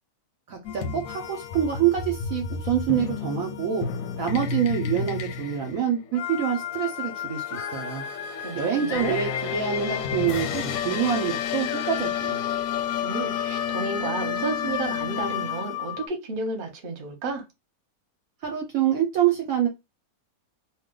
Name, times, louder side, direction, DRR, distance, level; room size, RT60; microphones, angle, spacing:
voice 1, 0.5-3.9 4.2-8.0 8.5-12.5 18.4-19.7, right 9 dB, 65° right, 1.0 m, -26 dB
sound 1, 0.6-16.1, left 8 dB, 70° left, 0.9 m, -30 dB
voice 2, 8.4-9.2 13.0-17.4, right 3 dB, 40° right, 0.9 m, -32 dB
2.8 x 2.3 x 3.6 m
omnidirectional pair, 1.7 m